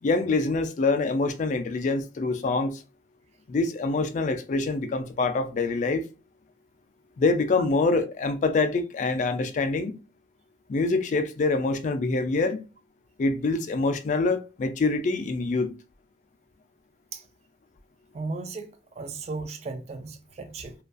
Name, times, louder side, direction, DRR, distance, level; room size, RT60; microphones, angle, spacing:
voice 1, 0.0-2.8 3.5-6.1 7.2-9.9 10.7-12.6 13.2-15.7, left 3 dB, 45° left, 0.3 m, -25 dB
voice 2, 18.1-20.7, right 3 dB, 40° right, 0.3 m, -36 dB
2.3 x 2.2 x 2.4 m
head